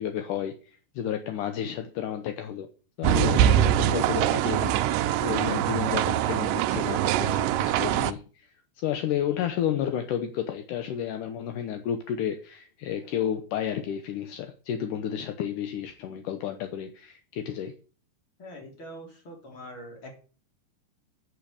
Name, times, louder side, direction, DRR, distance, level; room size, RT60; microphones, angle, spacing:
voice 1, 0.0-2.7 3.0-8.5 8.8-17.8, left 9 dB, 75° left, 2.0 m, -31 dB
sound 1, 3.0-8.1, right 12 dB, 80° right, 2.0 m, -23 dB
voice 2, 18.4-20.1, equal, 30° left, 4.0 m, -43 dB
9.1 x 6.9 x 8.7 m
omnidirectional pair, 4.5 m